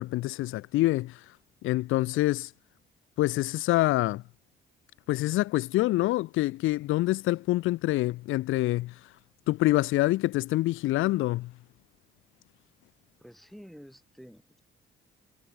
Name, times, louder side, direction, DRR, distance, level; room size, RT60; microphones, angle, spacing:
voice 1, 0.0-1.4 1.6-2.5 3.2-4.2 5.1-9.1 9.5-11.5, left 17 dB, 90° left, 0.8 m, -26 dB
voice 2, 13.2-14.6, equal, ahead, 4.0 m, -49 dB
cardioid pair, 90°, 20 cm